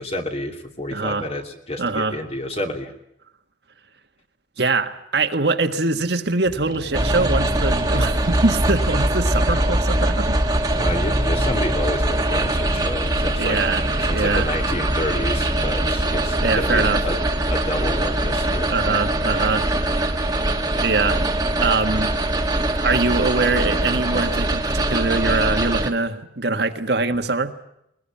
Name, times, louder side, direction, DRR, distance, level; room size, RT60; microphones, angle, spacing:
voice 1, 0.0-2.9 10.8-17.2 17.5-18.7, left 1 dB, 35° left, 4 dB, 2.8 m, -29 dB
voice 2, 0.9-1.3 1.8-2.2 4.6-10.4 13.4-13.8 14.1-14.5 16.4-17.0 18.7-20.2 20.8-21.3 21.6-22.1 22.8-27.5, right 3 dB, 60° right, 6 dB, 1.6 m, -23 dB
sound 1, 6.4-13.5, left 1 dB, 80° left, 3.9 m, -41 dB
sound 2, 6.9-25.9, right 1 dB, 20° right, 1.7 m, -22 dB
21.5 x 20.5 x 8.6 m, 0.79 s
head